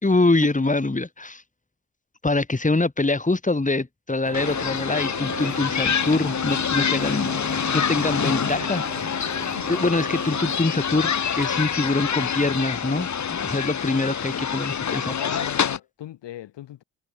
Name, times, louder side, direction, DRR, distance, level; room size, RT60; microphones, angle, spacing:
voice 1, 0.0-1.4 2.2-7.3 7.7-8.9 9.7-13.1 13.4-15.4, left 2 dB, 15° left, 4.4 m, -24 dB
sound 1, 4.2-10.6, right 18 dB, 75° right, 5.0 m, -39 dB
sound 2, 4.3-15.8, left 7 dB, 35° left, 1.8 m, -26 dB
voice 2, 14.8-16.8, left 13 dB, 60° left, 5.6 m, -38 dB
figure-of-eight pair, 40°, 48 cm